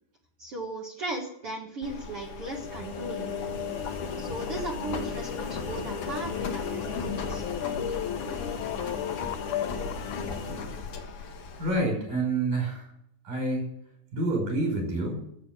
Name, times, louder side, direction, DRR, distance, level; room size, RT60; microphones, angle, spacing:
voice 1, 0.4-3.6 4.2-7.4, right 2 dB, 50° right, -1 dB, 2.1 m, -37 dB
Engine, 1.8-11.8, left 5 dB, 50° left, 2.0 m, -35 dB
sound 1, 3.0-10.3, left 10 dB, 75° left, 2.1 m, -37 dB
voice 2, 11.6-12.9 13.3-13.6 14.1-15.2, right 2 dB, 70° right, 1 dB, 7.1 m, -28 dB
13.0 x 8.4 x 9.0 m, 0.74 s
omnidirectional pair, 4.0 m